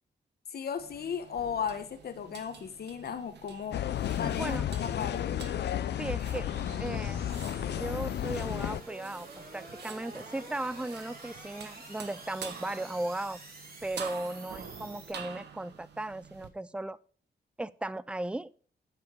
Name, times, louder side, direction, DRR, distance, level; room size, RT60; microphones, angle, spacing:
voice 1, 0.5-3.8 4.2-5.4, left 7 dB, 65° left, 9 dB, 1.2 m, -36 dB
sound 1, 0.8-16.5, right 7 dB, 85° right, 1.2 m, -48 dB
sound 2, 1.3-15.1, right 2 dB, 60° right, 4.1 m, -50 dB
sound 3, 3.7-8.8, left 11 dB, 85° left, 0.5 m, -32 dB
voice 2, 4.2-4.7 6.0-6.5 6.8-7.2 7.7-13.4 13.8-17.0 17.6-18.5, right 1 dB, 5° right, 18 dB, 0.3 m, -36 dB
8.3 x 6.9 x 5.2 m, 0.43 s
wide cardioid pair, 125°, 17 cm